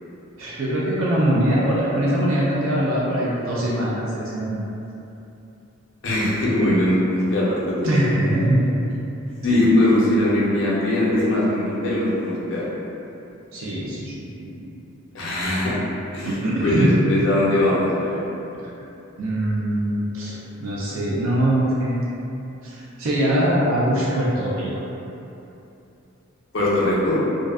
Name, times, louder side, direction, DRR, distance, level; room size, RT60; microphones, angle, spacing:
voice 1, 0.4-4.6 7.8-8.9 9.5-9.8 13.5-14.7 16.2-16.9 18.6-18.7 19.2-20.3 20.6-22.0 22.6-24.9, right 1 dB, 70° right, -6 dB, 0.4 m, -22 dB
voice 2, 6.0-8.3 9.4-12.7 15.1-15.7 16.1-18.2 26.5-27.2, left 1 dB, 60° left, -7 dB, 0.6 m, -21 dB
2.5 x 2.2 x 2.3 m, 2.9 s
head